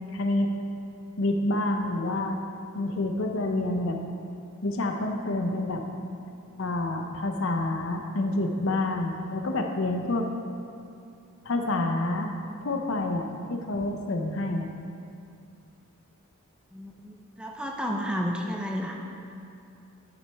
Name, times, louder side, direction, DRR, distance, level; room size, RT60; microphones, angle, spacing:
voice 1, 0.1-0.5 1.2-2.4 2.7-4.0 4.6-5.8 6.6-10.3 11.5-12.3 12.6-14.7, left 2 dB, 60° left, 4 dB, 0.6 m, -28 dB
voice 2, 16.7-19.0, equal, 5° right, 0 dB, 0.5 m, -32 dB
11.0 x 6.1 x 3.4 m, 2.6 s
head